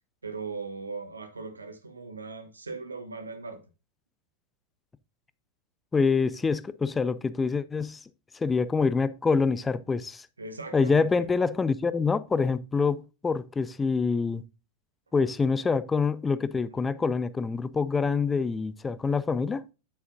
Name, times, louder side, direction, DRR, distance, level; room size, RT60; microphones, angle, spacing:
voice 1, 0.2-3.6 10.4-11.3, right 4 dB, 75° right, 1.3 m, -39 dB
voice 2, 5.9-8.0 8.4-10.3 10.7-14.4 15.1-19.6, left 4 dB, 15° left, 0.6 m, -26 dB
9.5 x 8.1 x 2.4 m
figure-of-eight pair, 90°, 0 cm